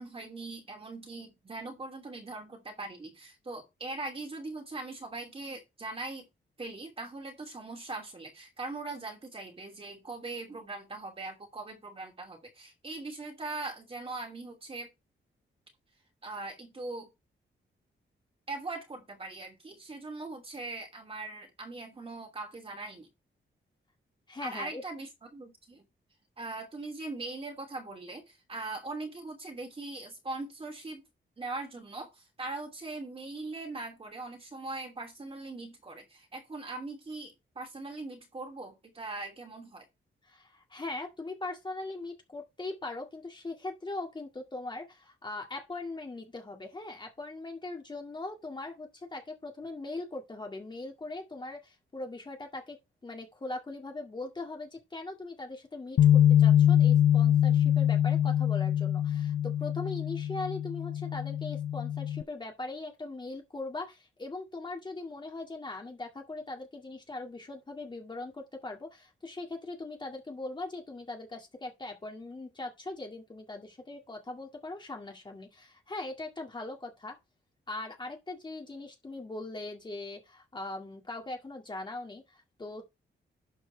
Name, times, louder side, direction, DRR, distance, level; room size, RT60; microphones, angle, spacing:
voice 1, 0.0-6.2 6.6-14.9 16.2-17.1 18.5-23.1 24.4-25.9 26.4-31.0 31.4-39.8, right 3 dB, 30° right, 2.8 m, -41 dB
voice 2, 24.3-24.8 40.2-52.8 53.0-77.2 77.7-82.8, left 2 dB, 25° left, 2.0 m, -40 dB
Bass guitar, 56.0-62.2, left 10 dB, 65° left, 0.4 m, -24 dB
12.0 x 4.4 x 4.5 m
wide cardioid pair, 165°, 20 cm